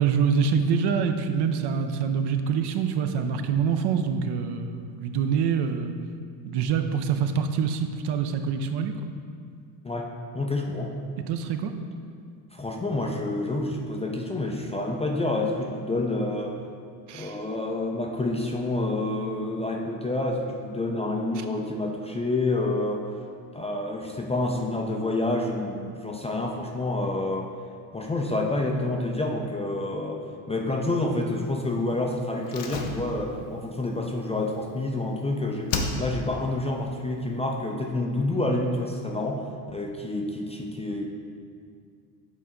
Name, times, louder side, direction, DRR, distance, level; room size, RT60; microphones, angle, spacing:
voice 1, 0.0-6.0 6.4-9.1 11.3-11.7 17.1-17.4, right 6 dB, 55° right, 7 dB, 0.6 m, -25 dB
voice 2, 9.8-11.0 12.5-16.6 17.1-23.1 23.5-27.5 27.9-30.2 30.5-41.1, left 2 dB, 15° left, 0 dB, 0.4 m, -28 dB
Slam, 32.5-35.2 35.7-36.4 36.7-36.8, left 4 dB, 70° left, 0.9 m, -33 dB
8.3 x 4.1 x 3.7 m, 2.3 s
supercardioid pair, 90°, 48 cm